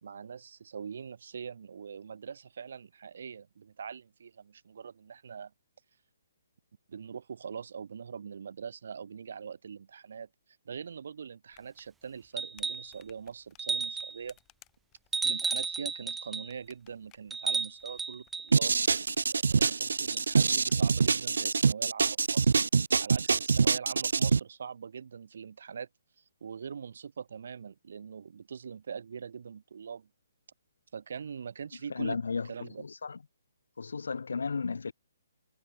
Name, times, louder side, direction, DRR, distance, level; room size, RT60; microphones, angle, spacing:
voice 1, 0.0-5.5 6.9-10.3 10.7-14.4 15.2-18.8 19.5-22.5 23.0-25.9 26.4-30.1 30.9-32.2 32.4-32.8, right 6 dB, 60° right, 4.1 m, -42 dB
sound 1, 11.5-21.5, left 20 dB, 15° left, 7.6 m, -61 dB
sound 2, 12.4-12.9 13.6-14.2 15.1-16.5 17.3-18.5 20.1-20.2, right 4 dB, 5° right, 0.3 m, -33 dB
sound 3, 18.5-24.4, right 5 dB, 85° right, 0.5 m, -25 dB
voice 2, 31.9-33.2 33.8-34.9, left 5 dB, 85° left, 0.8 m, -34 dB
hypercardioid pair, 165°, 0 cm